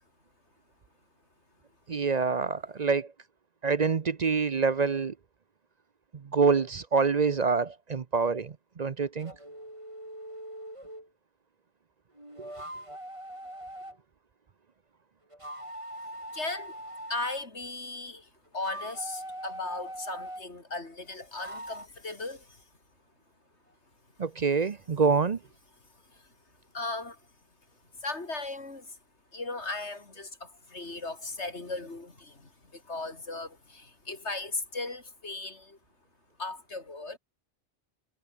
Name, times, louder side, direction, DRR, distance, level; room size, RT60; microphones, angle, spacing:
voice 1, 1.9-3.1 3.6-5.1 6.1-9.3 24.2-25.4, right 5 dB, 40° right, 0.7 m, -26 dB
sound 1, 9.2-11.1 12.2-14.0 15.3-17.4 18.5-20.5 21.3-21.9, right 1 dB, 25° right, 7.3 m, -42 dB
voice 2, 16.3-16.8 17.1-22.6 26.1-26.3 26.7-27.2 28.0-29.0 29.3-35.8 36.4-37.2, left 3 dB, 65° left, 3.7 m, -37 dB
omnidirectional pair, 1.2 m